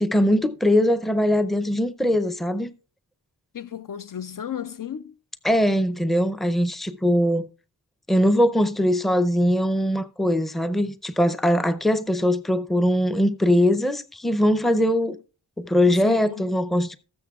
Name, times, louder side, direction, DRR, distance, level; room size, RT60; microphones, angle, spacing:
voice 1, 0.0-2.7 5.4-7.5 8.1-15.2 15.6-17.0, equal, ahead, 0.5 m, -21 dB
voice 2, 3.5-5.2 15.8-16.5, left 9 dB, 55° left, 0.5 m, -34 dB
19.5 x 6.8 x 2.4 m
wide cardioid pair, 105°, 41 cm